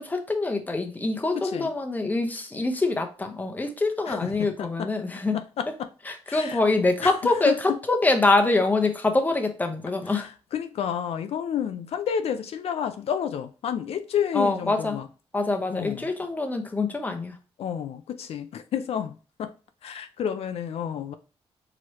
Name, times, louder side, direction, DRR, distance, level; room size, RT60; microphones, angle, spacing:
voice 1, 0.0-5.4 6.1-10.3 14.3-15.0 15.3-17.3, left 2 dB, 15° left, 0.8 m, -25 dB
voice 2, 1.3-1.7 4.1-4.9 5.3-5.9 6.3-6.6 7.0-7.8 10.1-15.1 15.7-16.1 17.6-19.5 19.8-21.1, left 8 dB, 70° left, 0.4 m, -30 dB
4.7 x 3.0 x 3.0 m
cardioid pair, 120°, 11 cm